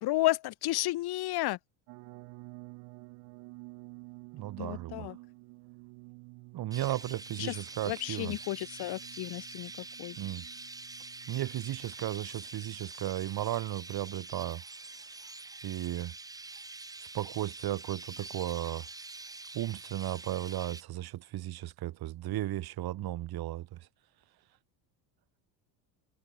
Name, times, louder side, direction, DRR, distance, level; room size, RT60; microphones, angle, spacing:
voice 1, 0.0-1.6 4.6-5.2 7.4-7.5 7.9-9.7 10.0-10.2, left 17 dB, 60° left, 1.1 m, -32 dB
sound 1, 1.9-12.8, right 26 dB, 80° right, 2.0 m, -52 dB
voice 2, 4.3-5.1 6.5-8.4 10.2-10.5 11.3-14.6 15.6-16.2 17.0-18.9 19.5-23.9, right 15 dB, 55° right, 1.7 m, -35 dB
Chirp tweet, 6.7-20.8, right 3 dB, 10° right, 0.6 m, -46 dB
cardioid pair, 105°, 44 cm